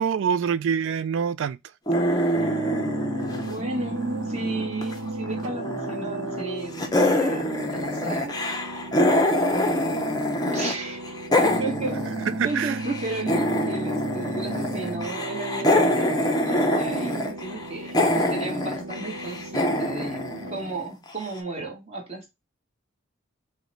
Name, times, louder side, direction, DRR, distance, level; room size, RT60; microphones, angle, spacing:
voice 1, 0.0-1.6 12.3-12.8, right 7 dB, 60° right, 0.3 m, -25 dB
sound 1, 1.9-4.9 5.2-6.5 6.8-10.7 11.0-21.1, left 1 dB, 20° left, 0.6 m, -25 dB
voice 2, 2.3-2.8 3.5-8.4 10.5-12.1 12.4-20.2 20.5-22.3, right 2 dB, 30° right, 1.2 m, -34 dB
sound 2, 2.3-20.6, right 2 dB, 90° right, 0.7 m, -35 dB
4.7 x 2.2 x 3.9 m
head